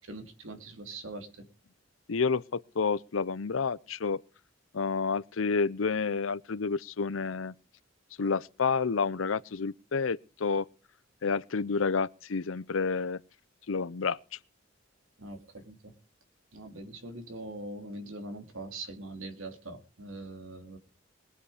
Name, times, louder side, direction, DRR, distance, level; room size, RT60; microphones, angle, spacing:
voice 1, 0.0-1.5 15.2-15.9 16.5-20.8, right 2 dB, 80° right, 2.8 m, -42 dB
voice 2, 2.1-4.2 4.7-7.5 8.2-10.7 11.2-13.2 13.7-14.4, left 5 dB, 80° left, 0.7 m, -29 dB
21.5 x 8.3 x 5.0 m
head